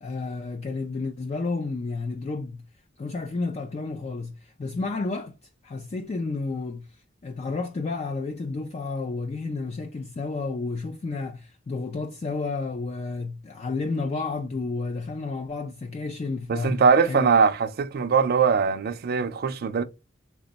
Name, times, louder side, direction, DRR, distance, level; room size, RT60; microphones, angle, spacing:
voice 1, 0.0-2.6 3.0-5.3 5.6-17.3, left 3 dB, 35° left, 0.3 m, -31 dB
voice 2, 16.5-19.8, right 5 dB, 50° right, 0.4 m, -21 dB
3.5 x 2.0 x 3.9 m
head